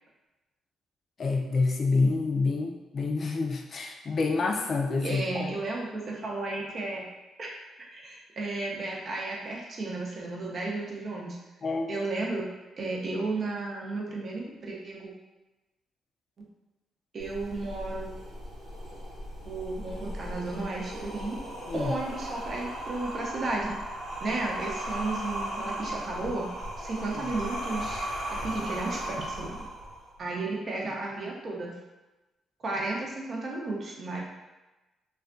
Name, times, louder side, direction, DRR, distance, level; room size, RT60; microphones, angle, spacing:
voice 1, 1.2-5.6 11.6-11.9 21.7-21.9, left 3 dB, 55° left, 2 dB, 0.4 m, -27 dB
voice 2, 5.0-7.0 7.4-7.5 7.9-11.4 11.9-12.5 12.8-15.1 16.4-16.5 17.1-18.1 19.4-21.4 21.7-23.8 24.2-26.5 26.8-29.6 30.2-31.7 32.6-34.2, right 2 dB, 55° right, -2 dB, 0.6 m, -33 dB
sound 1, 17.2-30.2, right 1 dB, 80° right, 1.1 m, -37 dB
2.4 x 2.2 x 2.5 m, 1.1 s
supercardioid pair, 55°, 0 cm